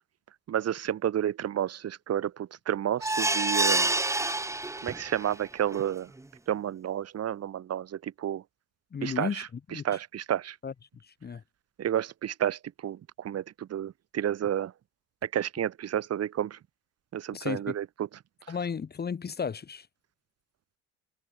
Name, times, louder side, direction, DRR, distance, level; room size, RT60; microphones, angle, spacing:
voice 1, 0.5-3.9 4.8-6.1 6.5-8.4 9.0-10.6 11.8-14.7 15.2-16.6 17.1-18.1, right 10 dB, 45° right, 2.6 m, -31 dB
sound 1, 3.0-5.3 5.7-5.8 6.2-6.3, right 2 dB, 10° right, 1.3 m, -27 dB
voice 2, 8.9-9.4 9.7-9.8 10.6-10.7 11.0-11.4 17.3-17.6 18.5-19.9, left 6 dB, 25° left, 1.7 m, -33 dB
hypercardioid pair, 60°, 36 cm